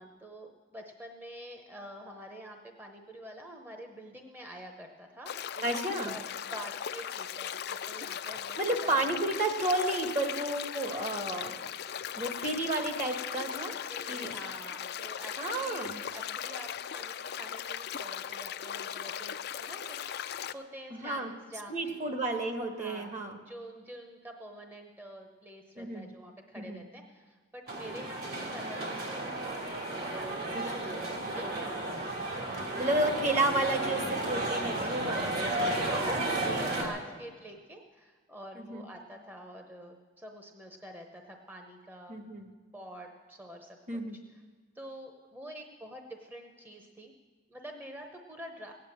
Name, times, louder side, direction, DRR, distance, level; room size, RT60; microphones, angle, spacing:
voice 1, 0.0-5.7 6.0-6.2 6.5-8.6 8.8-9.2 13.7-22.0 22.8-23.1 23.4-29.5 29.9-31.8 34.8-35.1 35.7-42.2 42.7-44.0 44.3-44.4 44.7-47.1 47.5-48.7, right 1 dB, 10° right, 3 dB, 0.9 m, -47 dB
sound 1, 5.3-20.5, left 9 dB, 60° left, 0.5 m, -38 dB
voice 2, 5.6-6.2 8.6-13.7 14.1-14.3 15.4-16.0 20.9-21.3 21.7-23.4 25.8-26.1 26.6-26.8 30.5-30.8 32.8-35.3 35.6-35.8 36.1-36.7 38.5-38.9 42.1-42.5 43.9-44.2, right 2 dB, 40° right, 5 dB, 1.5 m, -32 dB
sound 2, 27.7-36.9, right 2 dB, 55° right, 2.7 m, -33 dB
17.0 x 9.6 x 7.4 m, 1.4 s
head